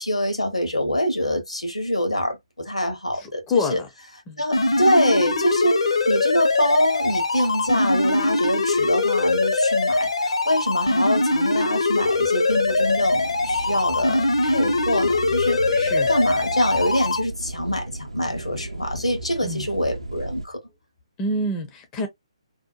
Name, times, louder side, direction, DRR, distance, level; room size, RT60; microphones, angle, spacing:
voice 1, 0.0-3.8 4.4-15.6 16.1-20.6, equal, 85° left, 0.9 m, -25 dB
voice 2, 3.1-3.9 4.3-4.4 15.7-16.1 19.4-19.7 21.2-22.1, left 2 dB, 15° left, 0.4 m, -27 dB
sound 1, 4.5-17.2, left 2 dB, 65° left, 0.6 m, -22 dB
sound 2, 12.5-20.5, right 1 dB, 80° right, 0.5 m, -35 dB
2.7 x 2.2 x 2.3 m
figure-of-eight pair, 135°, 3 cm